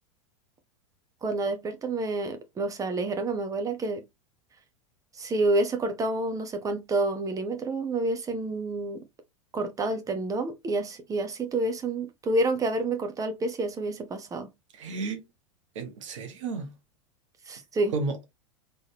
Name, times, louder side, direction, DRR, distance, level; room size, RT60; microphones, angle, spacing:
voice 1, 1.2-4.0 5.2-9.0 9.5-14.5 17.5-17.9, right 2 dB, 20° right, 1.1 m, -28 dB
voice 2, 14.7-15.2 15.7-16.7 17.9-18.2, right 3 dB, 65° right, 1.3 m, -32 dB
4.0 x 3.5 x 2.9 m
figure-of-eight pair, 90°, 17 cm